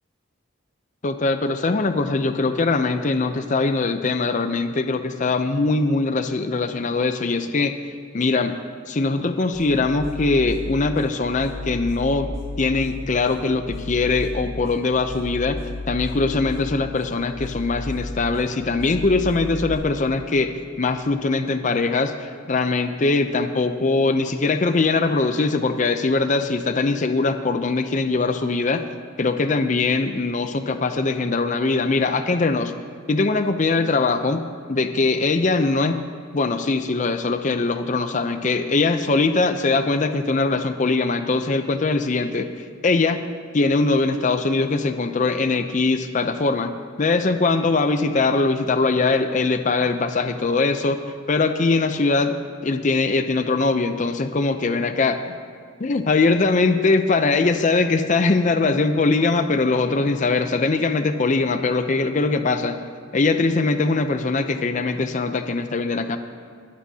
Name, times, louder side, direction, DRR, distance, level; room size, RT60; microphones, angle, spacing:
voice 1, 1.0-7.7 8.1-8.5 8.9-12.3 12.6-15.6 15.9-28.8 29.2-32.7 33.1-34.4 34.7-36.0 36.3-42.5 42.8-43.2 43.5-51.0 51.3-52.4 52.6-55.4 55.8-62.8 63.1-66.2, left 3 dB, 40° left, 8 dB, 0.5 m, -21 dB
sound 1, 9.5-19.7, left 2 dB, 75° left, 3.9 m, -34 dB
22.0 x 12.5 x 2.8 m, 2.2 s
head